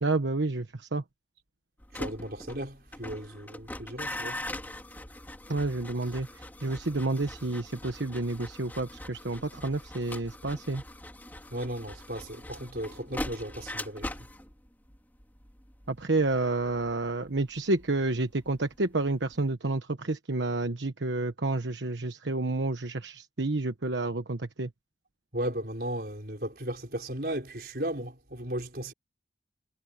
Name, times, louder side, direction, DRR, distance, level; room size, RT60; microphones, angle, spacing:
voice 1, 0.0-1.0 5.5-10.8 15.9-24.7, right 2 dB, 85° right, 1.2 m, -30 dB
sound 1, 1.8-18.8 19.1-19.5, left 1 dB, 10° left, 2.9 m, -42 dB
voice 2, 1.9-4.4 11.5-14.2 25.3-28.9, right 1 dB, 55° right, 5.3 m, -35 dB
head